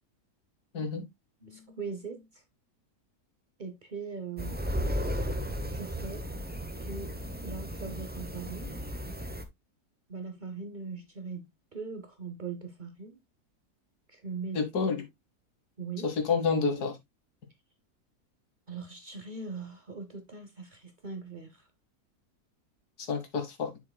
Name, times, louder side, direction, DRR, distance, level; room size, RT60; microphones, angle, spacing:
voice 1, 0.7-1.0 14.5-15.1 16.0-17.0 23.0-23.7, left 5 dB, 80° left, 1.9 m, -29 dB
voice 2, 1.4-2.4 3.6-4.6 5.7-6.3 6.9-7.1 7.4-8.8 10.1-13.2 14.1-14.6 15.8-16.1 18.7-21.6, right 5 dB, 40° right, 0.8 m, -40 dB
sound 1, 4.4-9.4, equal, 15° right, 0.3 m, -35 dB
7.5 x 6.6 x 2.2 m
omnidirectional pair, 1.6 m